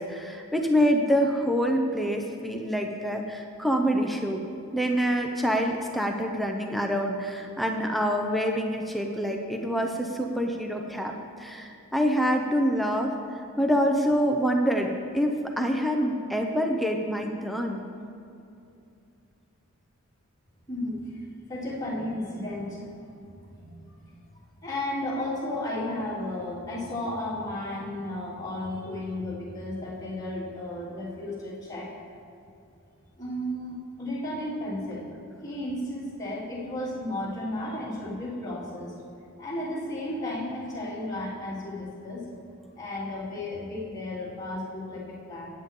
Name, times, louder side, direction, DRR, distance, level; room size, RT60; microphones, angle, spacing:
voice 1, 0.0-4.4 4.7-17.9, equal, ahead, 2 dB, 0.6 m, -26 dB
voice 2, 20.7-22.8 23.5-24.2 24.6-31.9 33.2-35.1 35.4-38.9 39.4-42.2 42.8-45.5, left 1 dB, 15° left, -9 dB, 3.2 m, -33 dB
18.0 x 8.5 x 3.7 m, 2.6 s
head